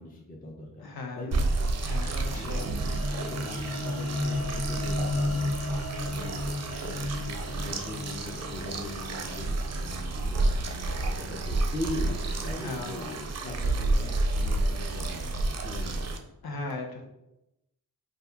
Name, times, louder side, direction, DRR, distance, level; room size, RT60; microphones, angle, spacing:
voice 1, 0.0-0.8 1.2-1.5 2.2-5.5 6.0-16.2, left 2 dB, 25° left, -1 dB, 0.5 m, -40 dB
voice 2, 0.8-1.5 1.8-2.6 12.5-12.9 16.4-17.1, left 3 dB, 75° left, 2 dB, 0.7 m, -37 dB
sound 1, 1.3-16.2, right 2 dB, 45° right, 0.4 m, -30 dB
sound 2, 1.9-10.3, left 2 dB, ahead, 0.9 m, -34 dB
2.7 x 2.4 x 3.5 m, 0.88 s
wide cardioid pair, 90°, 38 cm